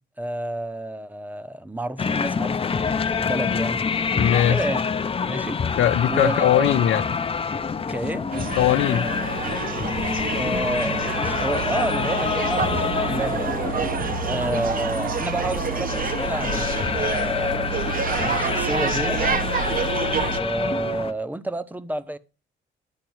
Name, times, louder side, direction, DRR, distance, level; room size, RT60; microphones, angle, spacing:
voice 1, 0.2-3.8 4.5-4.8 5.3-5.6 6.1-6.7 7.5-7.6 7.9-8.3 10.3-13.5 14.2-17.7 18.1-19.2 20.2-22.2, right 1 dB, 10° right, 0.9 m, -30 dB
sound 1, 2.0-21.1, left 5 dB, 30° left, 0.7 m, -27 dB
voice 2, 4.2-4.6 5.8-7.0 8.6-9.1, left 12 dB, 80° left, 0.8 m, -20 dB
sound 2, 8.3-20.4, right 6 dB, 45° right, 1.0 m, -28 dB
10.5 x 4.5 x 7.9 m
cardioid pair, 90°, 20 cm